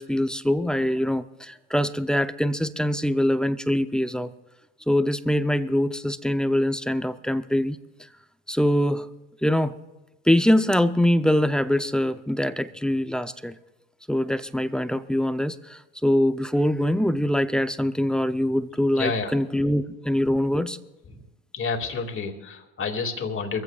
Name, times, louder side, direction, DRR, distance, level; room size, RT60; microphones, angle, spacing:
voice 1, 0.0-4.3 4.9-7.8 8.5-9.1 9.4-9.7 10.3-13.5 14.1-20.8, left 1 dB, ahead, 11 dB, 0.7 m, -23 dB
voice 2, 18.9-19.3 21.1-21.3 21.5-23.6, left 4 dB, 40° left, 4 dB, 2.3 m, -29 dB
23.5 x 15.0 x 2.4 m, 1.0 s
hypercardioid pair, 75°, 32 cm